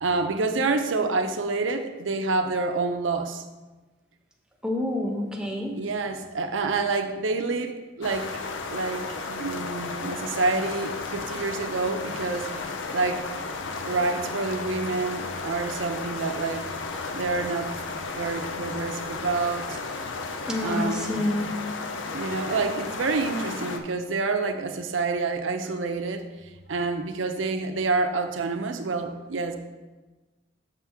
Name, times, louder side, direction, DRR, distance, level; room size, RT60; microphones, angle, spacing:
voice 1, 0.0-3.4 5.8-8.3 8.7-12.5 12.9-13.3 13.9-16.7 17.1-17.7 18.1-19.8 20.6-21.2 22.1-26.3 26.7-29.6, right 3 dB, 85° right, 7 dB, 0.6 m, -28 dB
voice 2, 4.6-5.7 20.5-21.5, left 1 dB, 5° right, 0 dB, 0.9 m, -28 dB
sound 1, 8.0-23.8, left 3 dB, 85° left, 0.6 m, -34 dB
7.3 x 5.8 x 3.5 m, 1.2 s
head